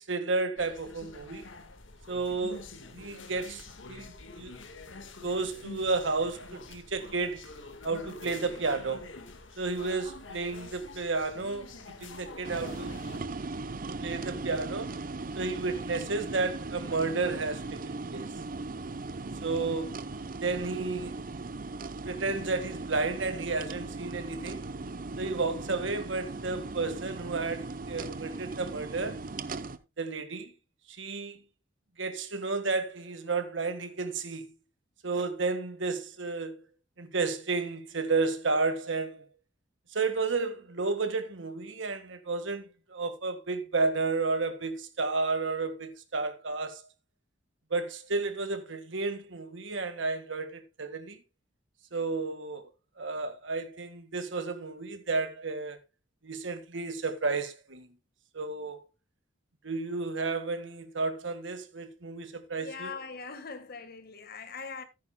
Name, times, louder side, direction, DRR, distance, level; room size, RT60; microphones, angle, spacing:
voice 1, 0.0-1.5 2.1-2.7 2.9-4.5 5.2-7.4 7.8-9.1 9.6-11.7 12.0-13.0 14.0-15.0 15.3-18.3 19.4-20.0 20.4-21.2 22.1-24.6 25.2-29.2 30.0-30.5 30.9-31.4 32.0-34.5 35.0-36.6 37.0-39.2 39.9-46.8 47.7-51.2 51.9-52.7 53.0-55.8 56.2-57.9 58.3-58.8 59.6-62.9, right 3 dB, 75° right, 1.6 m, -32 dB
sound 1, 0.6-13.2, left 3 dB, 75° left, 1.7 m, -46 dB
sound 2, 12.4-29.8, right 3 dB, 45° right, 0.7 m, -38 dB
voice 2, 62.6-64.8, left 5 dB, 50° left, 1.6 m, -41 dB
14.5 x 9.5 x 2.2 m
head